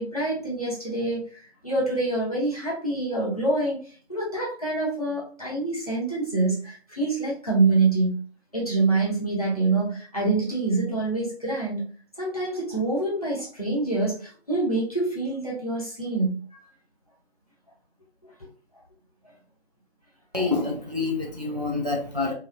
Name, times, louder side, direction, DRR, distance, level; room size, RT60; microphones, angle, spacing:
voice 1, 0.0-3.8 4.1-8.2 8.5-11.8 12.2-16.4, right 3 dB, 35° left, 0.9 m, -26 dB
voice 2, 20.3-22.3, left 3 dB, 40° right, 0.5 m, -27 dB
3.1 x 2.0 x 2.3 m
figure-of-eight pair, 175°, 32 cm